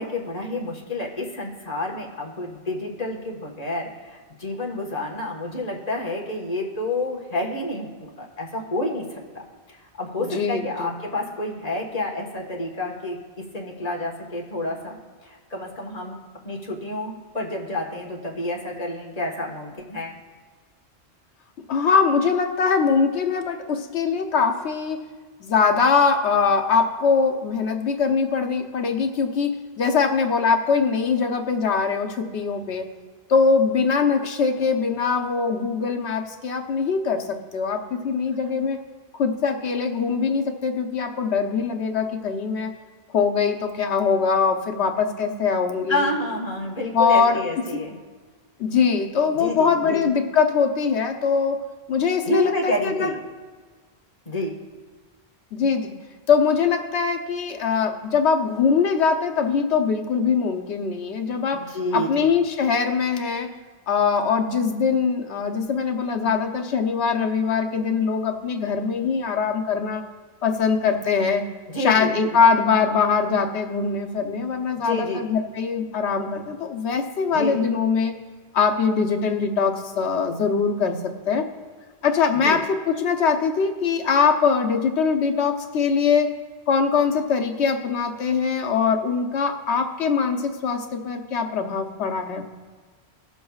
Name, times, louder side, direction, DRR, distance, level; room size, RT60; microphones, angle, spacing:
voice 1, 0.0-15.0 15.2-16.2 16.4-20.1 34.6-34.7 45.9-48.0 49.3-50.0 52.2-53.2 54.2-54.5 61.5-62.3 71.7-72.4 74.7-75.2 77.3-77.6 82.4-82.6, left 1 dB, 35° left, -1 dB, 1.5 m, -29 dB
voice 2, 10.2-10.9 21.7-25.0 25.4-29.5 29.8-32.9 33.3-38.8 39.2-42.7 43.1-46.1 46.9-47.4 48.6-51.6 51.9-53.1 55.5-55.9 56.3-61.6 61.9-63.5 63.9-70.0 70.4-71.4 71.8-78.1 78.5-81.5 82.0-86.3 86.7-92.5, left 5 dB, 90° left, 5 dB, 1.1 m, -22 dB
20.0 x 7.1 x 2.3 m, 1.4 s
omnidirectional pair, 1.1 m